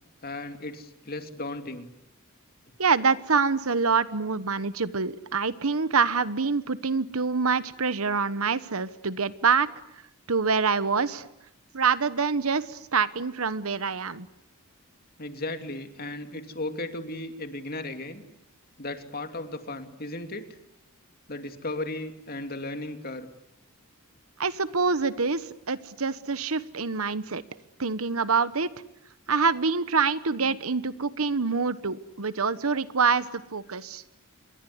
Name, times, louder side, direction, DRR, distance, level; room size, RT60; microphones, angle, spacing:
voice 1, 0.2-1.9 15.2-18.2 18.8-20.4 21.3-23.3 33.7-33.9, left 2 dB, 45° left, 7 dB, 2.6 m, -35 dB
voice 2, 2.8-9.7 10.3-11.3 11.7-14.3 24.4-27.4 27.8-28.7 29.3-34.0, right 5 dB, 75° right, 15 dB, 1.2 m, -26 dB
27.0 x 22.5 x 9.6 m, 0.80 s
head